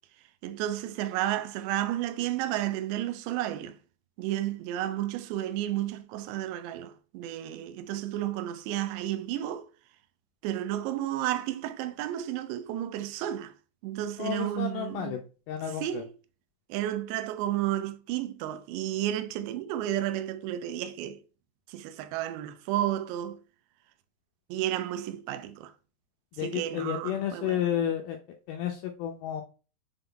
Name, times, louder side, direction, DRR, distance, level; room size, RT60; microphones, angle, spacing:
voice 1, 0.4-3.8 4.2-9.7 10.4-13.6 13.8-15.2 15.7-16.1 16.7-21.2 21.7-23.4 24.5-25.8 26.4-27.6, right 13 dB, 85° right, 2.8 m, -32 dB
voice 2, 14.2-15.2 15.5-16.0 26.3-28.2 28.5-29.4, left 10 dB, 90° left, 2.1 m, -31 dB
6.9 x 3.8 x 3.7 m
omnidirectional pair, 4.9 m